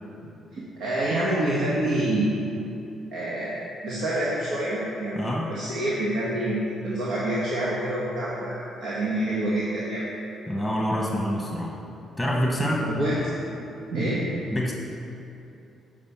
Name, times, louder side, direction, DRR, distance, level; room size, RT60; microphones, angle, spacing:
voice 1, 0.5-2.4 3.1-10.0 13.0-13.3 13.9-14.4, right 1 dB, 80° right, -7 dB, 1.4 m, -27 dB
voice 2, 5.1-5.5 10.5-11.8 12.2-12.9 14.5-14.7, equal, 5° right, -2 dB, 1.2 m, -26 dB
7.5 x 5.2 x 7.1 m, 2.8 s
cardioid pair, 90°, 0 cm